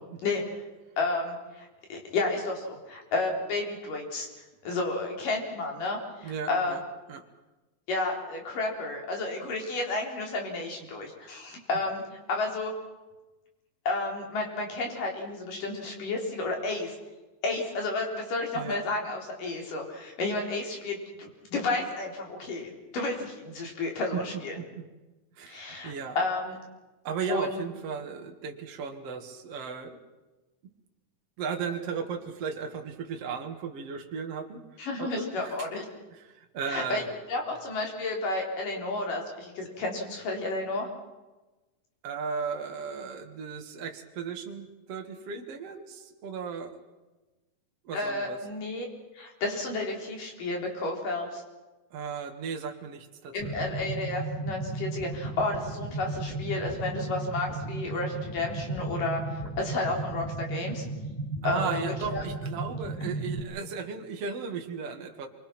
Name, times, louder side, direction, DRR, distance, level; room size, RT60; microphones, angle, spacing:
voice 1, 1.0-4.3 4.6-6.8 7.9-12.0 12.3-12.7 13.9-17.0 17.4-24.6 25.5-26.6 27.3-27.6 34.8-35.9 36.7-37.0 37.3-40.9 47.9-48.9 49.1-51.4 53.3-59.2 59.6-60.8 61.4-62.2 63.0-63.1, left 2 dB, 90° left, 1 dB, 5.7 m, -31 dB
voice 2, 6.2-6.8 7.1-7.2 18.5-18.8 24.1-24.9 25.4-26.2 27.0-30.0 31.4-34.6 35.0-35.7 36.1-37.1 42.0-46.8 47.8-48.4 51.9-53.3 61.4-65.3, right 6 dB, 50° right, 3 dB, 2.7 m, -36 dB
sound 1, 53.4-63.4, right 3 dB, 10° left, 4.7 m, -35 dB
27.5 x 24.0 x 6.0 m, 1.1 s
omnidirectional pair, 3.7 m